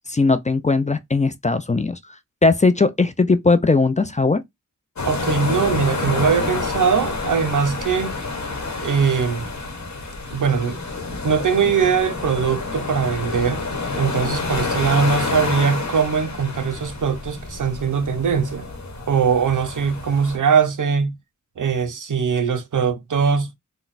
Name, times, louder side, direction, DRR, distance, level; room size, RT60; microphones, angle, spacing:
voice 1, 0.1-2.0 2.4-4.4, left 3 dB, 25° left, 0.4 m, -18 dB
sound 1, 5.0-20.4, left 3 dB, 60° left, 1.1 m, -28 dB
voice 2, 5.0-8.2 8.8-9.5 10.3-10.8 11.2-13.6 13.9-18.7 19.1-21.2 21.6-23.5, right 6 dB, 70° right, 0.7 m, -21 dB
3.9 x 2.1 x 2.5 m
cardioid pair, 50°, 32 cm